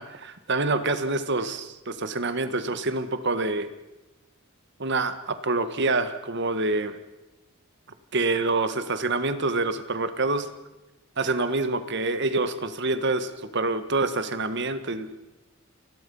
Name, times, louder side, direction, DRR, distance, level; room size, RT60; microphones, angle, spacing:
voice 1, 0.0-3.7 4.8-7.0 8.1-10.5 11.2-15.2, right 3 dB, 55° right, 10 dB, 1.6 m, -26 dB
29.0 x 20.5 x 5.6 m, 1.0 s
head